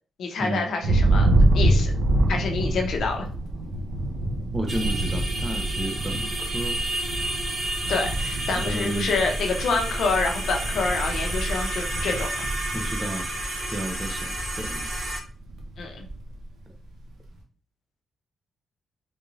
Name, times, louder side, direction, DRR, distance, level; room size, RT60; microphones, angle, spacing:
voice 1, 0.2-1.3 1.5-1.9 2.3-3.3 7.9-12.3 15.8-16.0, left 4 dB, 60° left, 2 dB, 0.7 m, -27 dB
Thunder, 0.8-13.7 14.0-14.6 14.9-16.4, right 1 dB, 70° right, 0.7 m, -26 dB
voice 2, 4.5-6.8 8.6-9.1 12.7-13.3 13.7-14.9 16.7-16.8, right 1 dB, 10° right, 4 dB, 0.5 m, -32 dB
sound 1, 4.7-15.2, right 1 dB, 35° right, 1.0 m, -30 dB
3.5 x 2.6 x 3.1 m, 0.41 s
wide cardioid pair, 175°, 0 cm